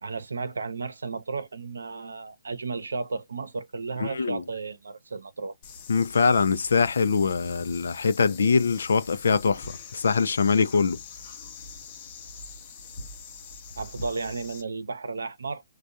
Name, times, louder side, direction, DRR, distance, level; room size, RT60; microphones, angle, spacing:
voice 1, 0.0-5.5 13.8-15.6, right 4 dB, 80° right, 0.7 m, -33 dB
voice 2, 4.0-4.4 5.9-11.0, left 5 dB, 75° left, 0.4 m, -23 dB
sound 1, 5.6-14.6, left 4 dB, 35° left, 0.8 m, -43 dB
3.4 x 2.3 x 2.6 m
hypercardioid pair, 140°, 0 cm